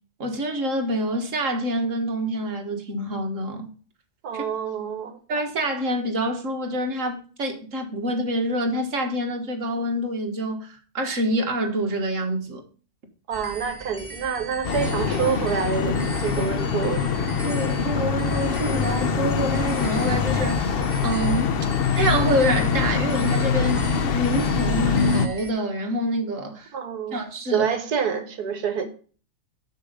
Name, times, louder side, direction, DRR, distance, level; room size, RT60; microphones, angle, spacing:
voice 1, 0.2-3.7 4.3-4.4 5.3-10.7 10.9-12.6 17.5-21.7 22.0-23.8 24.1-26.7 27.1-27.7, right 1 dB, 50° right, 1.9 m, -26 dB
voice 2, 4.2-5.2 13.3-17.1 26.7-28.9, right 7 dB, 70° right, 1.7 m, -27 dB
sound 1, 13.3-25.5, right 3 dB, 25° right, 0.9 m, -39 dB
sound 2, 14.6-25.3, left 5 dB, 80° left, 0.5 m, -23 dB
6.9 x 6.7 x 5.0 m
omnidirectional pair, 1.7 m